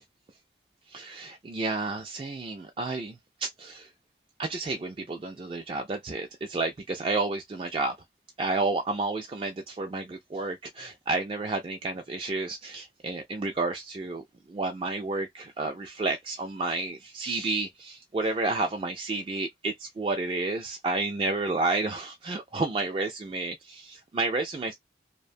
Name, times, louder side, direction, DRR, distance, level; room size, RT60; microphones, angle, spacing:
voice 1, 0.9-3.1 3.4-3.9 4.4-7.9 8.4-14.2 14.5-24.7, right 3 dB, 30° right, 0.3 m, -31 dB
2.4 x 2.2 x 2.5 m
head